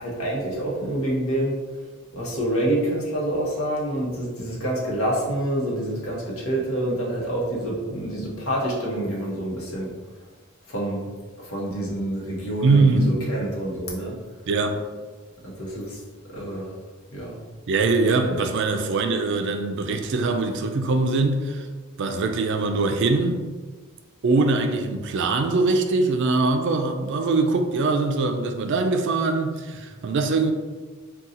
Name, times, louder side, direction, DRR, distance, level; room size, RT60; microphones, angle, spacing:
voice 1, 0.0-1.5 2.1-9.9 10.7-11.1 11.4-14.2 15.4-16.7 17.1-17.4, right 1 dB, 75° left, 0.9 m, -27 dB
voice 2, 12.6-13.2 14.5-14.8 17.7-21.7 22.0-23.5 24.2-30.5, right 3 dB, 55° right, 0.4 m, -22 dB
2.7 x 2.3 x 3.7 m
head